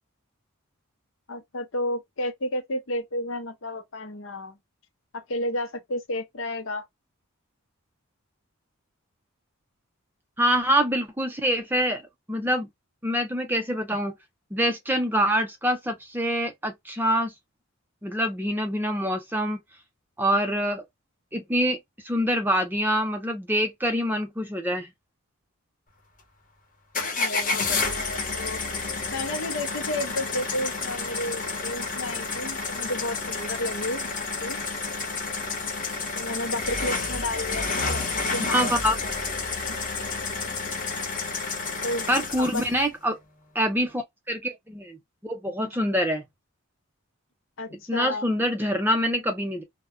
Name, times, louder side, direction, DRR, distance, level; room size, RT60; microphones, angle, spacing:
voice 1, 1.3-4.6 5.1-6.9 27.1-28.6 29.1-34.6 36.2-38.8 39.4-39.8 41.8-42.1 42.4-42.6 47.6-48.3, left 1 dB, 60° left, 0.7 m, -32 dB
voice 2, 10.4-12.0 12.3-12.7 13.0-14.1 14.5-17.3 18.0-19.6 20.2-20.9 21.3-21.8 22.0-24.9 38.5-38.9 42.1-43.2 43.5-45.0 45.2-46.2 47.9-49.6, equal, 10° right, 0.5 m, -25 dB
sound 1, 26.9-42.9, left 4 dB, 35° left, 0.9 m, -30 dB
2.2 x 2.1 x 3.5 m
head